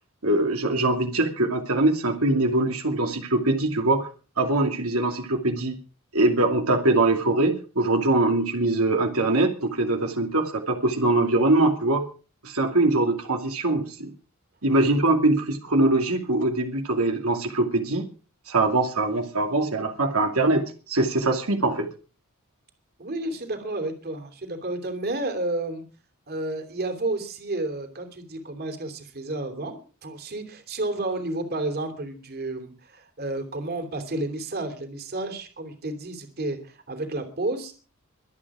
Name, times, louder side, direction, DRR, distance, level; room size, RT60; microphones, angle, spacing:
voice 1, 0.2-4.1 4.4-5.8 6.1-12.0 12.4-14.1 14.6-18.0 18.5-21.9, right 2 dB, 85° right, 3 dB, 2.6 m, -22 dB
voice 2, 23.0-25.8 26.3-37.7, right 2 dB, 50° right, 7 dB, 3.1 m, -31 dB
23.5 x 8.8 x 4.9 m, 0.38 s
head